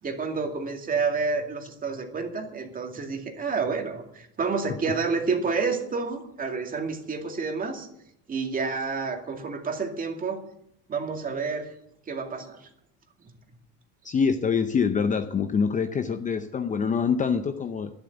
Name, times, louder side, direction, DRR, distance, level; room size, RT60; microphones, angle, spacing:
voice 1, 0.0-7.9 8.3-10.4 10.9-11.7 12.1-12.7, right 4 dB, 25° right, 4 dB, 2.3 m, -29 dB
voice 2, 14.0-17.9, left 6 dB, 25° left, 9 dB, 0.7 m, -25 dB
11.5 x 11.5 x 8.1 m, 0.76 s
cardioid pair, 150°, 33 cm